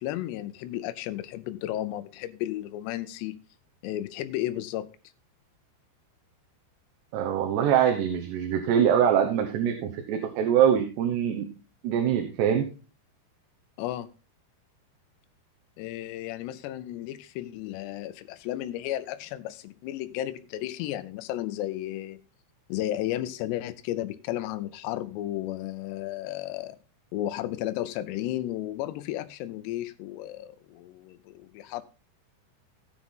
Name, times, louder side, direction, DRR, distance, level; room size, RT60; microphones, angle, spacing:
voice 1, 0.0-3.4 3.8-4.9 13.8-14.1 15.8-22.2 22.7-26.8 27.1-31.8, left 14 dB, 90° left, 2.8 m, -33 dB
voice 2, 7.1-11.5 11.8-12.6, right 9 dB, 85° right, 3.3 m, -23 dB
16.5 x 6.0 x 3.8 m
omnidirectional pair, 4.8 m